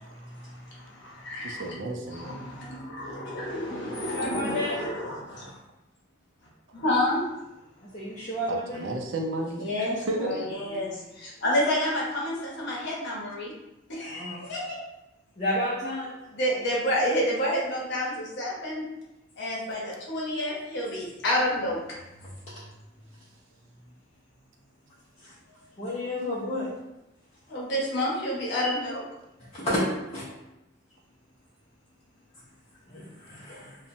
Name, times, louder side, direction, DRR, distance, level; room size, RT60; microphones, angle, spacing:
voice 1, 0.2-1.7 2.1-5.5 6.7-7.2 9.6-13.5 13.9-14.8 16.3-18.8 19.4-21.8 27.5-29.0, left 1 dB, 60° left, -4 dB, 0.8 m, -29 dB
voice 2, 1.4-2.5 8.5-9.7 10.1-10.5, right 2 dB, 70° right, 2 dB, 0.4 m, -32 dB
voice 3, 4.1-4.8 7.9-8.9 14.0-14.6 15.4-16.2 25.2-25.3 25.8-26.7 28.6-28.7 29.5-29.8 30.1-30.2 32.9-33.8, left 1 dB, 30° left, -10 dB, 0.5 m, -31 dB
2.8 x 2.1 x 2.5 m, 0.92 s
head